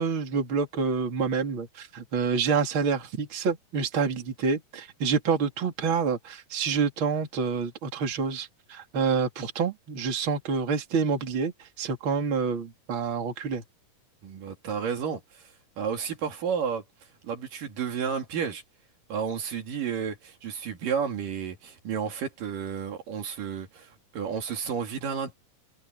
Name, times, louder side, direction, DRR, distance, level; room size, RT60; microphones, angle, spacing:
voice 1, 0.0-13.6, right 5 dB, 35° right, 3.3 m, -27 dB
voice 2, 14.2-16.8 17.2-18.6 19.1-25.4, right 7 dB, 70° right, 3.9 m, -32 dB
omnidirectional pair, 4.0 m